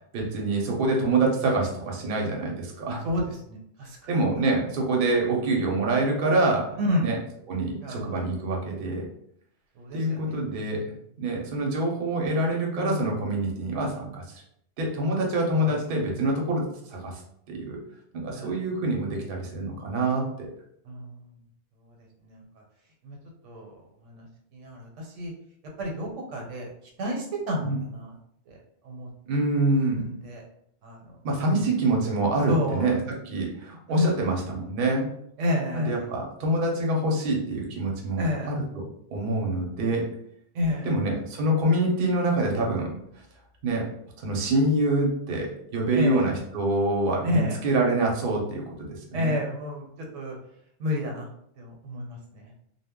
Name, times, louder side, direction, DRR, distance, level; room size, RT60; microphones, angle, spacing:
voice 1, 0.1-3.0 4.1-7.2 7.5-9.1 9.9-10.8 11.2-14.4 14.8-17.2 17.5-17.8 18.1-20.5 27.6-27.8 29.3-30.0 31.2-35.1 35.7-38.8 39.1-40.0 40.8-42.9 43.6-43.9 44.2-48.6 49.1-49.4, right 2 dB, 55° right, 0 dB, 0.7 m, -26 dB
voice 2, 3.5-3.9 6.8-7.1 7.8-8.1 9.8-10.2 12.8-13.1 15.6-15.7 18.3-18.5 20.9-21.1 22.2-22.4 23.0-23.2 23.4-23.7 24.1-24.2 24.5-24.9 25.2-25.3 25.8-26.7 27.0-28.1 28.9-29.1 30.0-30.4 30.8-31.0 31.4-31.6 32.5-32.9 34.0-34.1 35.4-36.0 38.2-38.5 40.5-40.9 45.9-46.2 47.2-47.6 49.1-49.8 50.1-50.3 50.8-51.3 51.6-52.2, left 1 dB, 80° right, 0 dB, 1.0 m, -29 dB
2.1 x 2.0 x 3.5 m, 0.71 s
omnidirectional pair, 1.3 m